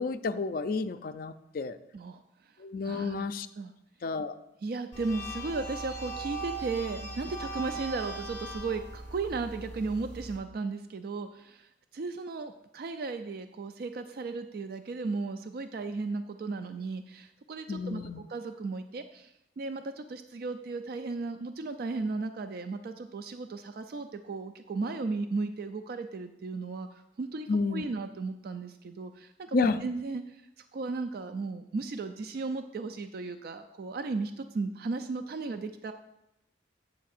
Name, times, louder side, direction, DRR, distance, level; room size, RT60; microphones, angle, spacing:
voice 1, 0.0-1.8 2.6-3.5 4.0-4.3 17.7-18.2 27.5-27.8 29.5-29.8, left 4 dB, 50° left, 10 dB, 0.4 m, -30 dB
voice 2, 1.9-2.5 2.8-3.3 3.6-3.7 4.6-35.9, right 3 dB, 55° right, 8 dB, 0.3 m, -35 dB
sound 1, 4.9-10.4, right 2 dB, 15° left, 1.5 m, -39 dB
8.4 x 3.4 x 6.5 m, 0.85 s
head